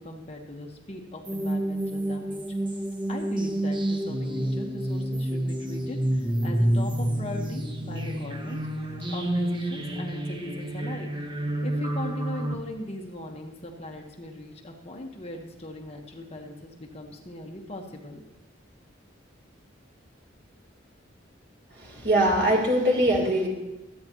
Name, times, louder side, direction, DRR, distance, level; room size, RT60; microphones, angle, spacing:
voice 1, 0.0-2.4 3.1-8.6 9.1-18.2, left 1 dB, 35° left, 1 dB, 1.4 m, -39 dB
sound 1, 1.3-12.5, right 1 dB, 25° right, 1.2 m, -29 dB
voice 2, 21.8-23.5, right 1 dB, 60° right, -1 dB, 3.7 m, -22 dB
23.5 x 9.5 x 3.1 m, 1.0 s
head